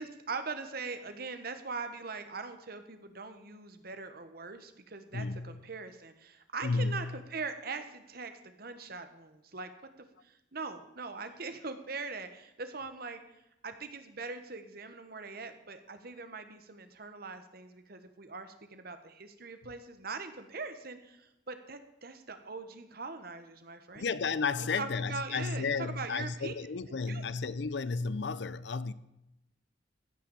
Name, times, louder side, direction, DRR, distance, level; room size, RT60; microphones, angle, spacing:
voice 1, 0.0-9.7 10.0-13.2 13.6-24.1 24.6-26.5 27.1-27.2, right 4 dB, 55° right, 1.3 m, -41 dB
voice 2, 5.1-5.6 6.6-7.1 23.9-28.9, left 4 dB, 60° left, 0.5 m, -33 dB
15.0 x 6.8 x 7.1 m
head